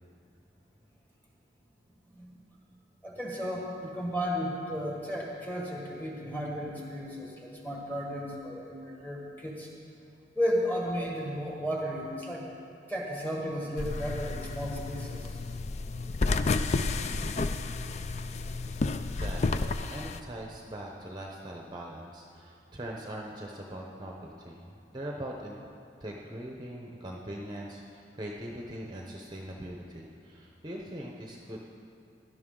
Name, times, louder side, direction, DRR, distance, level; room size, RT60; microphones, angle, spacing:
voice 1, 3.0-9.7 10.3-12.4 12.9-15.2, equal, 10° left, -2 dB, 1.6 m, -34 dB
sound 1, 13.8-20.2, left 3 dB, 40° left, 0.4 m, -31 dB
voice 2, 19.2-25.6 26.0-31.6, right 1 dB, 25° right, -1 dB, 0.8 m, -41 dB
17.0 x 11.0 x 3.8 m, 2.5 s
head